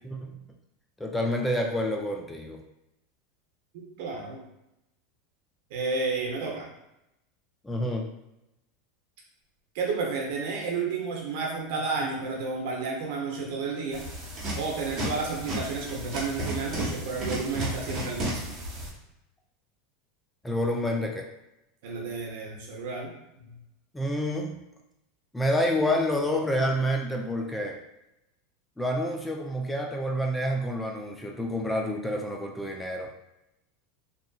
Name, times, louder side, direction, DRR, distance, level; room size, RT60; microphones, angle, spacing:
voice 1, 0.0-0.4 1.0-2.6 7.6-8.1 20.4-21.2 23.9-24.6 25.3-27.8 28.8-33.1, equal, 5° left, 1 dB, 0.3 m, -28 dB
voice 2, 3.7-4.4 5.7-6.7 9.7-14.0 14.5-18.5 21.8-23.1 23.4-23.5, right 4 dB, 70° right, -1 dB, 0.8 m, -31 dB
sound 1, 13.9-18.9, right 1 dB, 35° right, 1.1 m, -33 dB
2.8 x 2.5 x 2.3 m, 0.88 s
supercardioid pair, 130°, 0 cm